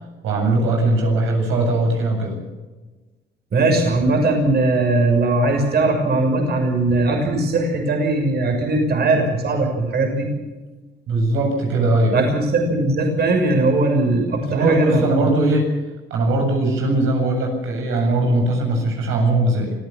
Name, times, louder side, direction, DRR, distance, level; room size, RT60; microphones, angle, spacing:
voice 1, 0.2-2.4 11.1-12.2 14.4-15.7 16.1-19.7, right 2 dB, 85° right, 1 dB, 8.0 m, -20 dB
voice 2, 3.5-10.3 12.1-15.0, right 2 dB, 55° right, 3 dB, 6.3 m, -19 dB
25.0 x 15.5 x 7.2 m, 1.2 s
cardioid pair, 90°, 20 cm